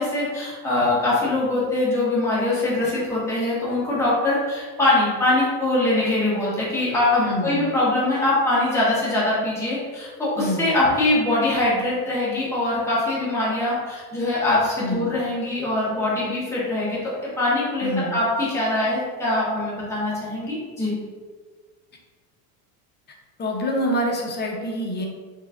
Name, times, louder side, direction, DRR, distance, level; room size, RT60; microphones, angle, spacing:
voice 1, 0.0-20.9, left 2 dB, 5° left, -8 dB, 1.5 m, -23 dB
voice 2, 7.2-7.6 10.4-10.7 14.8-15.1 17.8-18.2 23.4-25.1, equal, 25° left, 0 dB, 0.8 m, -26 dB
5.3 x 3.1 x 2.5 m, 1.5 s
supercardioid pair, 120°, 42 cm